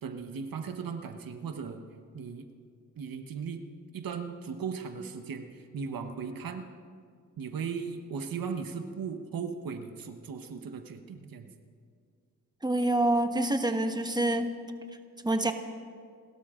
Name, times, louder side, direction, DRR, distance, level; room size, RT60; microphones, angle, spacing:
voice 1, 0.0-1.8 2.1-2.5 3.0-3.6 3.9-6.7 7.4-11.5, right 6 dB, 80° right, 7 dB, 1.2 m, -37 dB
voice 2, 12.6-14.5 15.2-15.5, right 1 dB, 10° right, 6 dB, 1.4 m, -26 dB
29.5 x 13.0 x 3.8 m, 2.2 s
cardioid pair, 80°, 34 cm